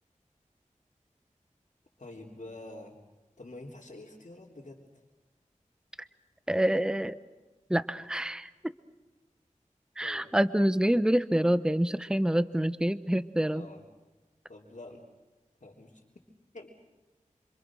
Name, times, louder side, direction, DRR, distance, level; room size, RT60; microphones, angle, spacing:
voice 1, 2.0-3.0 3.4-5.0 10.0-10.3 13.5-13.8 14.5-15.0 15.6-16.0 16.5-16.7, left 2 dB, 65° left, -3 dB, 3.6 m, -47 dB
voice 2, 6.5-7.2 7.7-8.5 10.0-13.6, right 1 dB, 5° right, 13 dB, 0.9 m, -26 dB
27.5 x 26.0 x 6.3 m, 1.2 s
wide cardioid pair, 55°, 13 cm